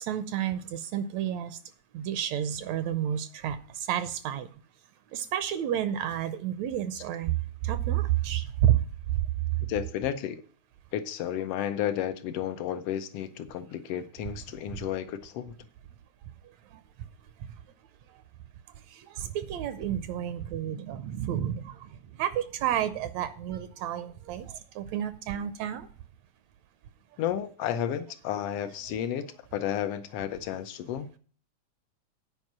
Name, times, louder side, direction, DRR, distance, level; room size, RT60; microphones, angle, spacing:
voice 1, 0.0-1.6 1.9-4.5 5.1-7.3 7.6-8.7 19.1-21.9 22.2-25.9, right 11 dB, 80° right, 1.8 m, -30 dB
voice 2, 9.7-10.4 10.9-15.5 27.2-29.2 29.5-31.1, left 10 dB, 75° left, 1.4 m, -32 dB
9.4 x 5.2 x 7.2 m
omnidirectional pair, 3.4 m